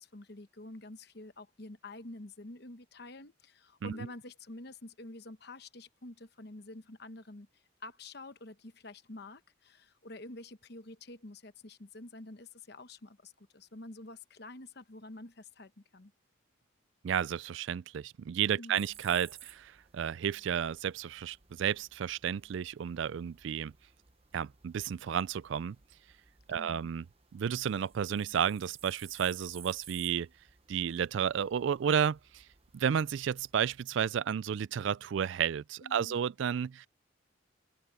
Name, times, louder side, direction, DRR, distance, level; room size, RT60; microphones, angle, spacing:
voice 1, 0.0-7.5 7.8-16.1 18.6-18.8 26.5-26.9 35.8-36.2, left 2 dB, 50° left, 1.0 m, -48 dB
voice 2, 17.0-23.7 24.3-25.8 26.5-27.0 27.3-30.3 30.7-32.4 32.7-36.9, right 8 dB, 65° right, 0.3 m, -32 dB
sound 1, 18.7-33.9, right 9 dB, 30° right, 0.8 m, -57 dB
head